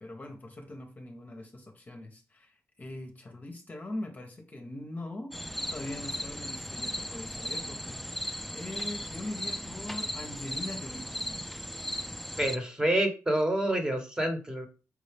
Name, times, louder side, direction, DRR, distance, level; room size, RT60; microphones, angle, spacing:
voice 1, 0.0-5.3 5.7-11.1, left 1 dB, 30° left, 0.9 m, -41 dB
sound 1, 5.3-12.6, left 1 dB, ahead, 0.4 m, -37 dB
voice 2, 12.4-14.7, right 1 dB, 15° right, 1.2 m, -28 dB
4.8 x 2.7 x 3.4 m
cardioid pair, 75°, 6 cm